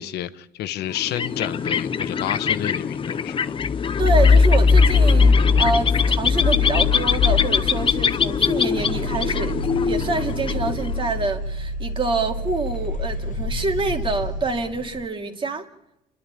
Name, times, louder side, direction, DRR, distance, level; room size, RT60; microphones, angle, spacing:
voice 1, 0.0-3.5, left 12 dB, 75° left, 1.1 m, -30 dB
sound 1, 0.9-11.3, left 6 dB, 30° left, 0.7 m, -24 dB
sound 2, 3.6-11.8 12.2-14.8, left 4 dB, 50° left, 1.1 m, -21 dB
voice 2, 4.0-9.6 9.9-15.7, right 3 dB, 30° right, 2.4 m, -26 dB
sound 3, 8.7-14.4, right 2 dB, 75° right, 5.1 m, -30 dB
28.5 x 11.5 x 8.9 m
cardioid pair, 110°, 17 cm